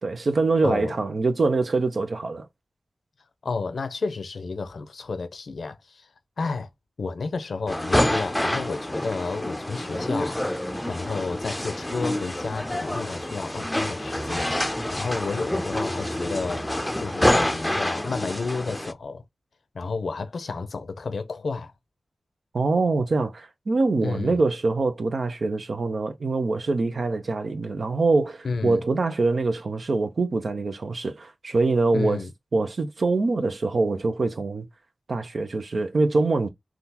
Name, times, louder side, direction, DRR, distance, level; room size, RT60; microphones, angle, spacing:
voice 1, 0.0-2.5 22.5-32.2 32.5-34.7 35.1-36.5, right 3 dB, 75° right, 0.6 m, -24 dB
voice 2, 0.6-1.0 3.4-6.1 6.4-6.7 7.0-19.2 19.7-21.7 24.0-24.4 28.4-28.8 31.9-32.3, left 4 dB, 85° left, 0.6 m, -31 dB
sound 1, 7.7-18.9, left 1 dB, 15° left, 0.5 m, -27 dB
3.6 x 2.4 x 2.8 m
cardioid pair, 45°, 0 cm